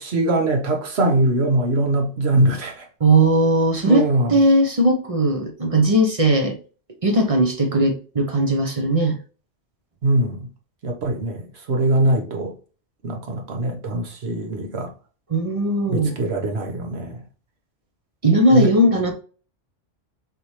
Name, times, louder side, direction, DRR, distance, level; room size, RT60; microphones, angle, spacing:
voice 1, 0.0-2.9 3.8-4.3 10.0-10.5 10.8-12.5 13.0-14.9 15.9-17.2 18.5-18.7, right 1 dB, 60° right, 1.3 m, -22 dB
voice 2, 3.0-6.6 7.0-9.2 15.3-16.1 18.2-19.1, right 1 dB, 35° right, 0.7 m, -18 dB
4.1 x 3.4 x 3.1 m
omnidirectional pair, 1.2 m